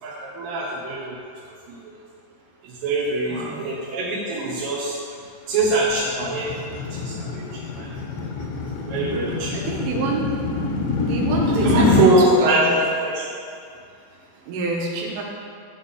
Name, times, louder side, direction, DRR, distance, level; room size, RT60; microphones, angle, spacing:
voice 1, 0.0-1.2 1.7-1.8 2.7-5.0 5.5-6.5 6.9-7.9 8.9-9.6 11.6-12.8 13.0-13.2, right 2 dB, 65° right, -8 dB, 2.4 m, -23 dB
voice 2, 3.2-3.6 9.2-10.4 11.0-12.7 14.5-15.2, right 3 dB, 85° right, -1 dB, 3.9 m, -28 dB
sound 1, 5.6-12.1, left 3 dB, 75° left, 2.8 m, -25 dB
11.0 x 4.8 x 7.5 m, 2.3 s
omnidirectional pair, 5.5 m